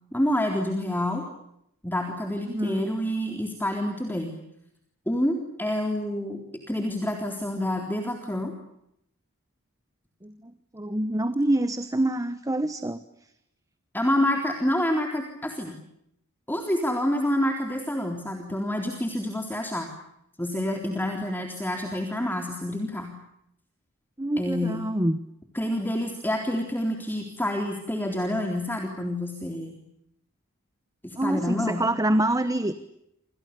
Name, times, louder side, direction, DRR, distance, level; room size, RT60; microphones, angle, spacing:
voice 1, 0.1-1.2 1.8-4.4 5.1-6.4 6.7-8.5 13.9-15.8 16.5-19.9 20.4-23.1 24.4-24.9 25.5-29.8 31.0-31.8, left 1 dB, 10° left, 3 dB, 3.7 m, -28 dB
voice 2, 2.5-2.9 10.2-13.0 24.2-25.2 31.2-32.7, right 1 dB, 15° right, 12 dB, 1.2 m, -26 dB
28.5 x 28.0 x 6.9 m, 0.79 s
head